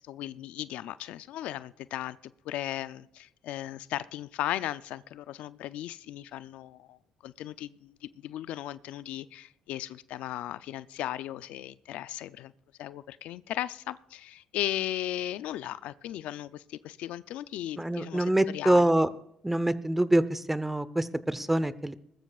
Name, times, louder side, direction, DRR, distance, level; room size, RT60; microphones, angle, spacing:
voice 1, 0.1-2.2 2.5-7.0 7.2-8.0 8.2-12.5 12.8-18.9, left 13 dB, 80° left, 15 dB, 0.5 m, -36 dB
voice 2, 17.8-19.1 19.4-21.9, right 1 dB, 10° right, 15 dB, 0.8 m, -25 dB
20.0 x 13.5 x 2.4 m, 0.78 s
supercardioid pair, 75°, 2 cm